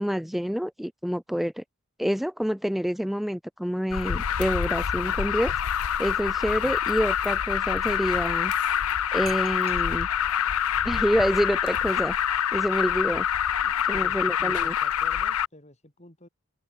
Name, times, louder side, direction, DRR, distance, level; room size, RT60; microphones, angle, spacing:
voice 1, 0.0-1.6 2.0-5.5 6.0-8.5 9.1-10.1 10.8-12.2 12.5-13.2 13.9-14.7, equal, ahead, 0.5 m, -27 dB
Alarm, 3.9-15.5, left 9 dB, 90° left, 0.6 m, -26 dB
voice 2, 4.9-5.2 6.5-6.8 13.6-16.3, left 1 dB, 30° left, 4.2 m, -49 dB
sound 1, 9.1-14.1, right 6 dB, 30° right, 6.6 m, -53 dB
open air
head